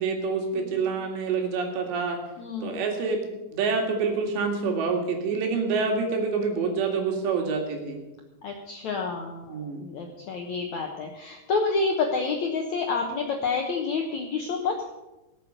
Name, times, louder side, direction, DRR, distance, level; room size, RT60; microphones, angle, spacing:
voice 1, 0.0-2.2 2.6-3.2 3.5-8.0 9.5-9.8, right 4 dB, 80° right, 3 dB, 4.3 m, -27 dB
voice 2, 2.4-2.8 8.4-14.9, left 4 dB, 70° left, 1 dB, 1.8 m, -29 dB
18.5 x 8.4 x 6.6 m, 1.0 s
omnidirectional pair, 5.0 m